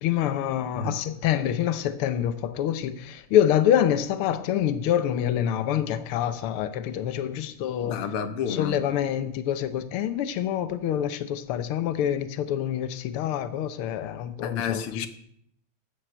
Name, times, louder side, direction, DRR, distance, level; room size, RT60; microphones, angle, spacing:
voice 1, 0.0-8.0 8.5-15.1, left 10 dB, 85° left, 1.2 m, -26 dB
voice 2, 7.8-8.8 14.4-15.1, left 6 dB, 60° left, 1.6 m, -30 dB
13.0 x 9.8 x 7.8 m
omnidirectional pair, 3.5 m